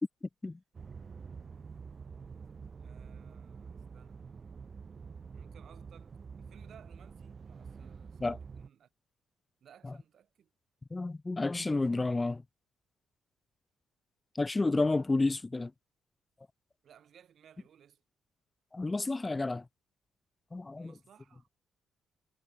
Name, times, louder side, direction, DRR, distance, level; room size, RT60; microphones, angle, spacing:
sound 1, 0.7-8.7, right 5 dB, 40° right, 5.5 m, -47 dB
voice 1, 2.8-4.2 5.3-8.9 9.6-10.5 14.8-15.1 16.8-18.0 20.8-21.5, right 9 dB, 60° right, 7.1 m, -60 dB
voice 2, 10.9-12.4 14.3-15.7 18.7-19.6 20.5-20.9, left 3 dB, 20° left, 0.7 m, -30 dB
cardioid pair, 90°, 0 cm